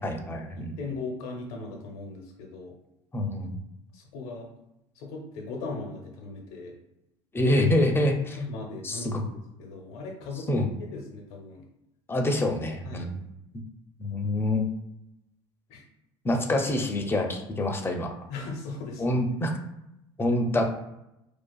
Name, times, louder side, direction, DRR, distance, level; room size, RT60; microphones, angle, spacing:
voice 1, 0.0-0.8 3.1-3.6 7.3-8.4 8.8-9.2 10.5-10.6 12.1-13.2 14.0-14.7 16.2-18.1 19.0-19.5 20.2-20.6, left 1 dB, 20° left, 3 dB, 0.5 m, -26 dB
voice 2, 0.5-2.7 3.9-4.5 4.9-6.7 8.4-11.6 12.8-13.1 15.7-15.8 18.3-19.2, left 3 dB, 70° left, 1 dB, 0.7 m, -38 dB
2.5 x 2.4 x 2.3 m, 0.87 s
hypercardioid pair, 80°, 13 cm